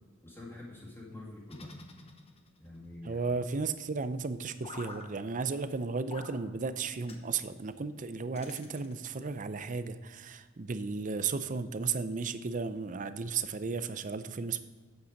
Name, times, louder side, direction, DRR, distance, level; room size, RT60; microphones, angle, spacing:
voice 1, 0.2-1.7 2.6-3.2, left 2 dB, 10° left, -6 dB, 2.3 m, -46 dB
sound 1, 1.5-2.7 4.6-5.1 6.1-6.4 7.1-7.3 8.3-9.2, left 3 dB, 30° left, 0.9 m, -47 dB
voice 2, 3.0-14.6, right 4 dB, 40° right, 12 dB, 0.5 m, -34 dB
8.5 x 8.1 x 5.1 m, 1.4 s
head